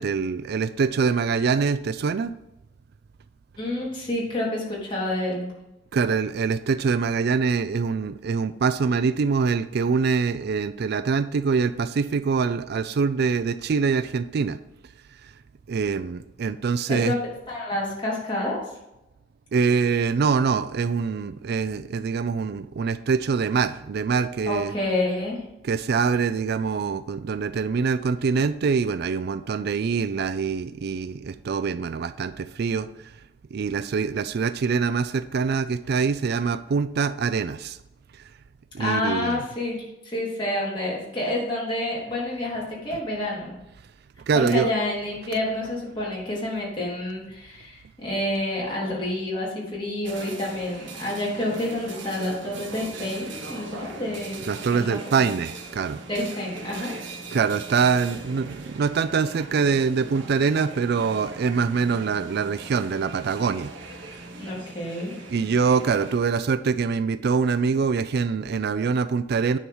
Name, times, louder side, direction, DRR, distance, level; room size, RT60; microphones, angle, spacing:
voice 1, 0.0-2.3 5.9-14.6 15.2-15.3 15.7-17.1 19.5-24.7 25.6-33.2 33.5-37.8 38.1-38.3 38.7-39.4 44.3-44.7 54.5-56.0 57.3-64.2 65.3-69.6, right 5 dB, 60° right, 13 dB, 0.4 m, -24 dB
voice 2, 3.6-5.5 16.9-17.2 17.5-18.6 24.5-25.4 38.8-43.6 44.3-54.4 54.7-55.0 56.1-56.9 64.4-65.1, left 1 dB, 25° left, -6 dB, 3.6 m, -28 dB
sound 1, 50.0-66.2, right 3 dB, 75° right, 1.4 m, -40 dB
9.9 x 4.6 x 5.5 m, 0.93 s
head